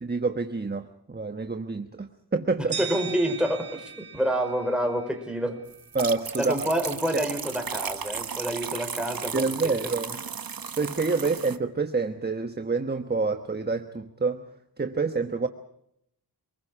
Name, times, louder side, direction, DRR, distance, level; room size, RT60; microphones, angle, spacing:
voice 1, 0.0-2.8 5.9-6.7 9.3-10.2 10.8-14.4 14.8-15.5, right 4 dB, 25° right, 7 dB, 1.3 m, -27 dB
voice 2, 2.6-5.6 6.4-9.8, equal, ahead, 5 dB, 4.6 m, -28 dB
sound 1, 2.7-5.6, right 7 dB, 75° right, 4.4 m, -38 dB
sound 2, 5.7-11.6, right 6 dB, 60° right, 1.2 m, -35 dB
29.0 x 21.0 x 4.9 m, 0.76 s
wide cardioid pair, 75°, 40 cm